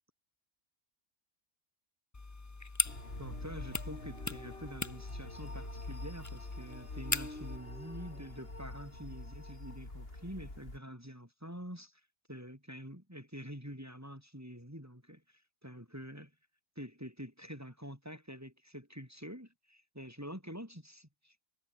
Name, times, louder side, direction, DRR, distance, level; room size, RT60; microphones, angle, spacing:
sound 1, 2.1-7.6, left 3 dB, 20° left, 0.6 m, -40 dB
sound 2, 2.8-10.8, left 2 dB, 60° left, 4.6 m, -45 dB
voice 1, 3.2-12.0 12.3-16.3 16.8-21.5, equal, 15° right, 7.0 m, -47 dB
omnidirectional pair, 1.1 m